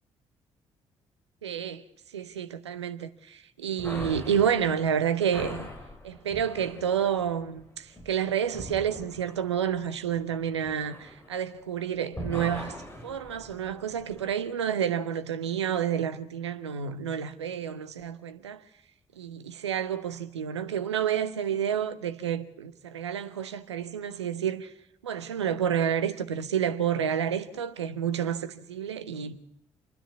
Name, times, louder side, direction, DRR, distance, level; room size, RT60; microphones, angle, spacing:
voice 1, 1.4-1.8 2.1-5.7 6.0-12.7 13.0-18.6 19.2-24.7 25.0-29.4, right 8 dB, 80° right, 0.8 m, -29 dB
sound 1, 3.8-11.8 12.1-14.4, left 1 dB, 15° left, 5.8 m, -42 dB
27.5 x 10.0 x 9.6 m
figure-of-eight pair, 40°, 14 cm